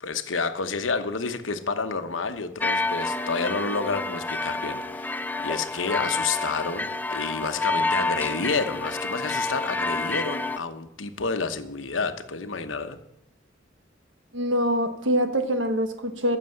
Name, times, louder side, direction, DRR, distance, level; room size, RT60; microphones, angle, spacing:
voice 1, 0.0-5.1 5.4-13.0, left 4 dB, 90° left, 9 dB, 1.0 m, -29 dB
sound 1, 2.6-10.6, left 2 dB, 10° left, 0.4 m, -29 dB
voice 2, 14.3-16.4, equal, 80° right, 8 dB, 1.4 m, -24 dB
15.0 x 6.8 x 6.5 m, 0.84 s
head